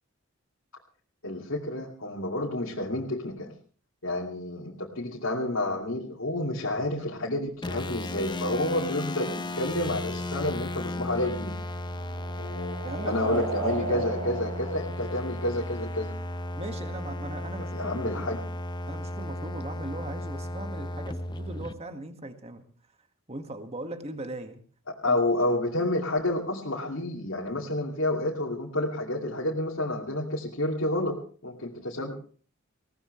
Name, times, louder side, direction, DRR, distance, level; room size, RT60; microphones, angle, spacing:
voice 1, 1.2-3.5 4.0-11.6 12.4-16.2 17.7-18.4 24.9-32.1, left 1 dB, 70° left, -1 dB, 2.5 m, -30 dB
sound 1, 7.6-21.7, left 1 dB, 20° left, 0.8 m, -35 dB
sound 2, 11.3-15.9, right 3 dB, 85° right, 5.8 m, -36 dB
voice 2, 12.8-14.1 16.6-18.3 18.9-22.6 23.3-24.6 25.1-25.2, right 1 dB, 30° right, 7 dB, 1.8 m, -39 dB
20.5 x 18.0 x 3.2 m, 0.43 s
head